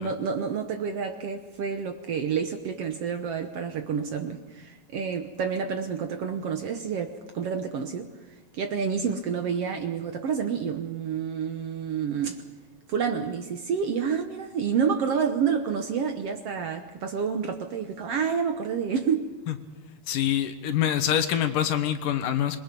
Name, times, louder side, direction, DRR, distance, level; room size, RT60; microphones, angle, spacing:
voice 1, 0.0-8.1 8.5-12.4 12.9-19.3, right 6 dB, 65° right, 1.7 m, -29 dB
voice 2, 19.9-22.6, left 10 dB, 80° left, 2.8 m, -26 dB
26.5 x 22.5 x 5.3 m
omnidirectional pair, 3.8 m